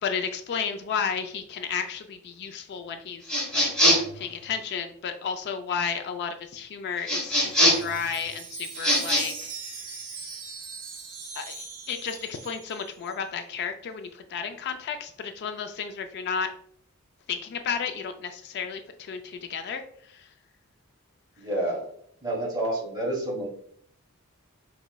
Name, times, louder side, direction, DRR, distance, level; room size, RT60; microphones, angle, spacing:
voice 1, 0.0-3.2 3.5-3.7 4.1-9.5 11.3-16.5 17.3-20.3, left 6 dB, 50° left, 7 dB, 0.3 m, -32 dB
sound 1, 3.3-4.2 7.1-7.9 8.7-9.2, equal, 5° left, 1.2 m, -22 dB
Wind chime, 7.0-13.2, right 5 dB, 65° right, 1.2 m, -41 dB
voice 2, 21.4-21.8 22.2-23.5, right 1 dB, 20° right, -2 dB, 1.2 m, -29 dB
5.0 x 3.0 x 2.2 m, 0.64 s
head